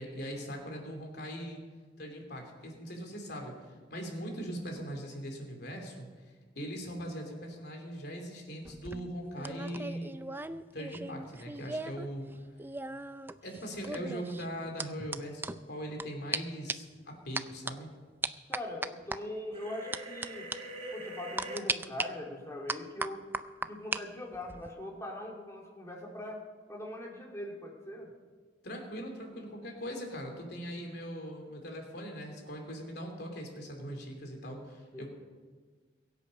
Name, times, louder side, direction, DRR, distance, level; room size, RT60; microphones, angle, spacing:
voice 1, 0.0-1.6 2.0-6.1 6.5-10.2 10.7-12.3 13.4-17.9 28.6-35.1, equal, 65° left, 2 dB, 3.2 m, -40 dB
sound 1, 8.6-12.1 12.3-16.0 16.3-16.4 16.7-17.0 17.4-17.7 18.2-19.2 19.9-20.3 20.5-20.6 21.4-22.1 22.7-24.0 24.3-24.7, right 3 dB, 10° right, 0.4 m, -37 dB
voice 2, 18.5-20.5 20.9-23.2 23.7-26.4 26.7-28.1 34.9-35.1, left 1 dB, 15° left, -1 dB, 2.8 m, -41 dB
sound 2, 19.5-21.6, right 1 dB, 35° right, 2.8 m, -43 dB
22.5 x 8.5 x 5.4 m, 1.5 s
head